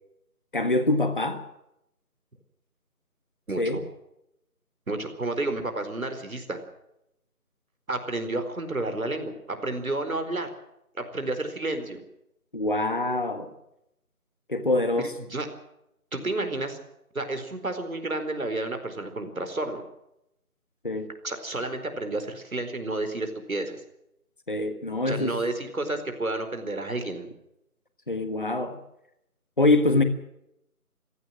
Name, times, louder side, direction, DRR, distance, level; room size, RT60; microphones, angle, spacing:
voice 1, 0.5-1.4 3.6-3.8 12.5-13.5 14.5-15.1 20.8-21.1 24.5-25.3 28.1-28.8 29.6-30.0, left 2 dB, 35° left, 9 dB, 1.5 m, -24 dB
voice 2, 3.5-3.8 4.9-6.6 7.9-9.3 9.6-10.5 11.0-12.0 15.0-15.5 16.1-16.8 17.1-19.8 21.2-23.8 25.1-27.3, right 2 dB, 65° right, 8 dB, 4.6 m, -31 dB
23.0 x 16.0 x 7.5 m, 0.81 s
figure-of-eight pair, 180°, 45 cm